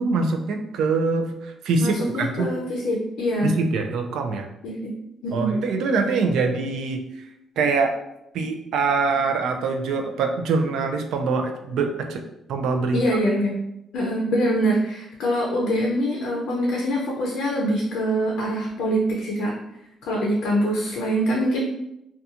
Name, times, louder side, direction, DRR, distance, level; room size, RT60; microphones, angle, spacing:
voice 1, 0.0-2.6 3.4-4.5 5.3-7.1 7.6-8.0 8.3-12.2 12.5-13.0, right 4 dB, 70° right, 5 dB, 0.3 m, -24 dB
voice 2, 1.8-3.6 4.6-4.9 5.2-5.6 12.9-13.6 13.9-19.5 20.0-21.6, equal, 70° left, -2 dB, 0.4 m, -24 dB
2.7 x 2.2 x 2.4 m, 0.84 s
cardioid pair, 180°, 0 cm